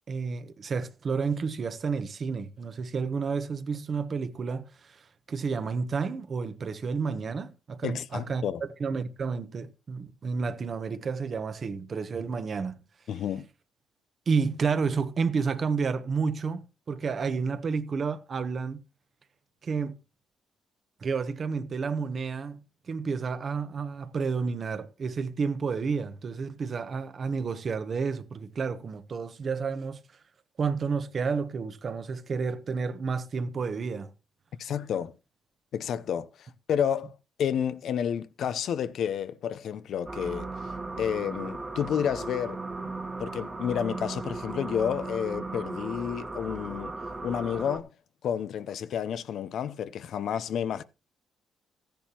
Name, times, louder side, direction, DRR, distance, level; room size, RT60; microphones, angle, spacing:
voice 1, 0.1-8.4 8.8-12.8 14.3-18.8 19.6-20.0 21.0-22.6 22.9-30.0 30.6-34.1, right 5 dB, 45° right, 1.0 m, -30 dB
voice 2, 7.8-8.6 13.1-13.5 34.6-35.1 35.7-40.5 41.0-42.9 43.2-47.0 47.2-47.9 48.2-50.8, left 8 dB, 70° left, 0.7 m, -30 dB
sound 1, 40.1-47.8, right 3 dB, 20° right, 1.4 m, -37 dB
14.0 x 10.5 x 2.9 m
cardioid pair, 90°, 0 cm